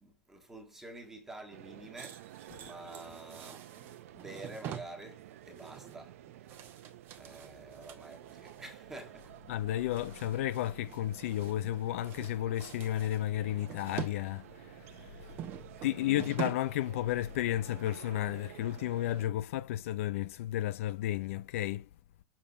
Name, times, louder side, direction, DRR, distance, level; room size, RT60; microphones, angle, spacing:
voice 1, 0.0-2.3 2.5-6.9 7.1-9.4 15.9-16.2, right 2 dB, 5° right, 1.6 m, -49 dB
Ambiente Interior Universidad, 1.5-19.3, right 12 dB, 65° right, 0.9 m, -52 dB
sound 1, 2.0-8.6 9.0-9.3 9.5-11.8 12.0-14.2 14.5-16.8 17.1-17.3 17.7-17.8, right 10 dB, 25° right, 1.1 m, -45 dB
voice 2, 9.5-15.4 15.8-21.9, left 13 dB, 60° left, 0.6 m, -33 dB
7.2 x 7.1 x 4.0 m
supercardioid pair, 175°, 8 cm